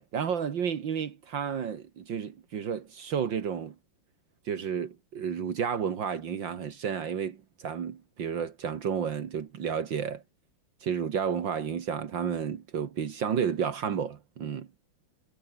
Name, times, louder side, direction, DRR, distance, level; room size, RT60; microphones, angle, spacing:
voice 1, 0.0-3.7 4.5-10.2 10.8-14.7, right 7 dB, 65° right, 2.2 m, -31 dB
omnidirectional pair, 2.3 m